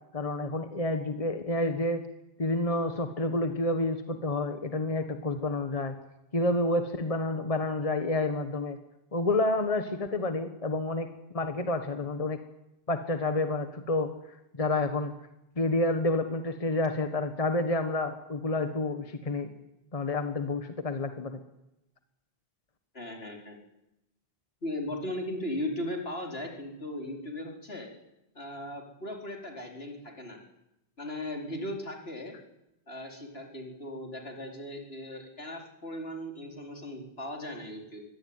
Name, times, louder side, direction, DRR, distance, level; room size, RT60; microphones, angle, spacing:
voice 1, 0.1-2.0 2.4-5.9 6.3-8.8 9.1-11.1 11.3-12.4 12.9-14.1 14.5-15.1 15.6-19.5 19.9-21.4, left 2 dB, 35° left, 8 dB, 1.5 m, -29 dB
voice 2, 22.9-23.6 24.6-27.9 28.3-30.4 31.0-32.3 32.9-38.0, left 1 dB, 75° left, 1 dB, 4.6 m, -37 dB
23.5 x 18.5 x 9.6 m, 0.90 s
omnidirectional pair, 1.0 m